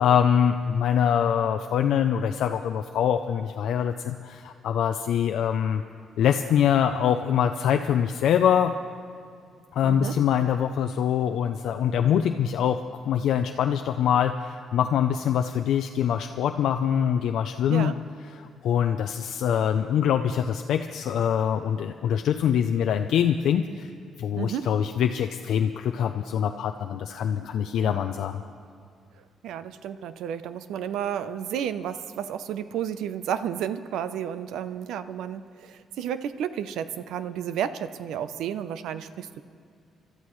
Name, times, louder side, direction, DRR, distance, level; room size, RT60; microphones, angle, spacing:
voice 1, 0.0-5.8 6.2-8.7 9.7-12.8 13.0-17.9 18.4-23.9 24.2-28.4, left 9 dB, 65° left, 6 dB, 0.5 m, -24 dB
voice 2, 9.8-10.2 17.7-18.0 24.4-24.7 27.8-28.1 29.4-39.4, right 9 dB, 90° right, 12 dB, 0.6 m, -32 dB
26.5 x 13.0 x 3.2 m, 2.3 s
cardioid pair, 180°, 0 cm